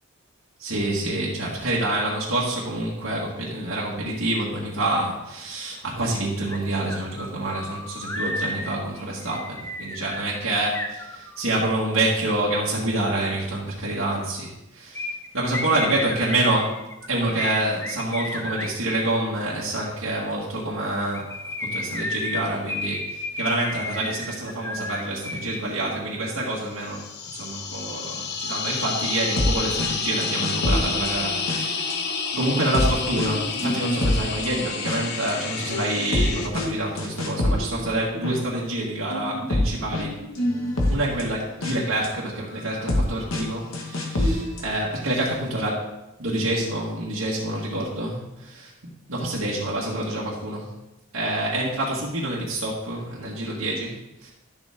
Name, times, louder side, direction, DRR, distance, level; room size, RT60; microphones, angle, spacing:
voice 1, 0.6-15.1 15.3-16.8 17.1-21.3 21.6-27.0 27.3-32.0 32.4-40.2 40.9-45.8 46.2-48.7 49.1-50.7 51.1-54.0 54.2-54.3, right 1 dB, 80° right, -6 dB, 1.8 m, -27 dB
sound 1, 6.5-6.6 6.9-11.6 14.9-19.2 21.0-25.6 25.9-26.0, left 2 dB, 10° left, 0.7 m, -33 dB
sound 2, 26.7-36.5, left 5 dB, 50° left, 0.8 m, -30 dB
sound 3, 29.1-29.5 29.8-29.9 30.2-31.9 32.3-35.0 35.3-38.3 39.1-42.1 42.7-43.0 43.3-43.4 43.7-44.7, left 1 dB, 75° left, 1.6 m, -26 dB
11.5 x 7.1 x 3.6 m, 0.95 s
head